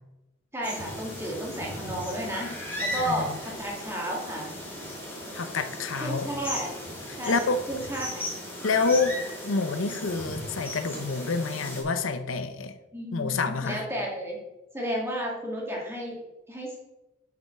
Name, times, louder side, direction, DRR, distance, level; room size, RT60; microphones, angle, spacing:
voice 1, 0.5-4.5 5.9-6.8 7.2-8.2 12.9-14.4 14.7-16.2 16.5-16.8, equal, 10° right, -2 dB, 1.9 m, -33 dB
sound 1, 0.6-11.8, left 1 dB, 10° left, 2.5 m, -37 dB
voice 2, 5.3-6.3 7.1-7.6 8.6-9.2 9.4-12.7 13.1-13.8, left 4 dB, 75° left, 10 dB, 0.7 m, -27 dB
7.8 x 5.4 x 6.0 m, 1.0 s
head